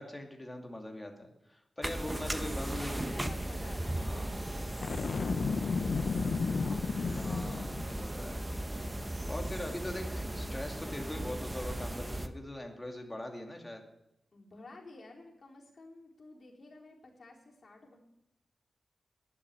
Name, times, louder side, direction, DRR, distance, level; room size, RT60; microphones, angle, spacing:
voice 1, 0.0-3.1 4.0-4.3 7.1-7.6 7.9-8.4 9.3-13.8, left 1 dB, 15° left, 2 dB, 2.5 m, -41 dB
sound 1, 1.8-12.3, right 1 dB, 15° right, 1.0 m, -37 dB
voice 2, 2.7-5.0 5.6-8.0 14.3-18.0, left 2 dB, 45° left, -2 dB, 4.1 m, -52 dB
Boom, 4.8-8.0, left 5 dB, 65° left, 0.6 m, -33 dB
11.0 x 9.9 x 10.0 m, 0.85 s
wide cardioid pair, 115°, 0 cm